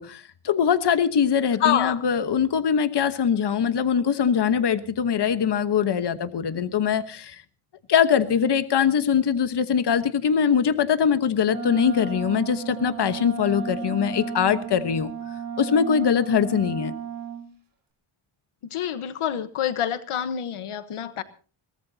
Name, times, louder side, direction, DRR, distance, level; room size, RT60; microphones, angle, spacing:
voice 1, 0.0-7.4 7.9-15.1 15.6-16.9, left 7 dB, 55° left, 11 dB, 1.2 m, -22 dB
voice 2, 1.6-2.0 18.7-21.2, left 10 dB, 80° left, 13 dB, 1.2 m, -26 dB
Wind instrument woodwind instrument, 11.5-17.5, right 4 dB, 45° right, 3.8 m, -33 dB
22.5 x 18.5 x 2.8 m, 0.37 s
wide cardioid pair, 115°, 49 cm